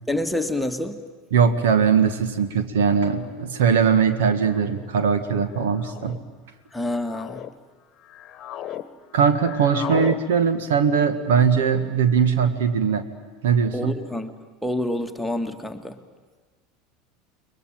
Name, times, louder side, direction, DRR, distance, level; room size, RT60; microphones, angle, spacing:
voice 1, 0.1-1.1 6.7-7.4 13.7-14.3 14.6-16.0, left 1 dB, 5° left, 5 dB, 1.8 m, -27 dB
voice 2, 1.3-6.2 9.1-13.0 13.4-13.9, right 6 dB, 60° right, 10 dB, 1.8 m, -20 dB
sound 1, 3.2-3.5 4.5-4.9 5.7-6.2 6.8-7.5 8.0-8.9 9.1-10.2, left 12 dB, 40° left, 1.4 m, -35 dB
29.5 x 22.0 x 9.1 m, 1.4 s
figure-of-eight pair, 75°, 0 cm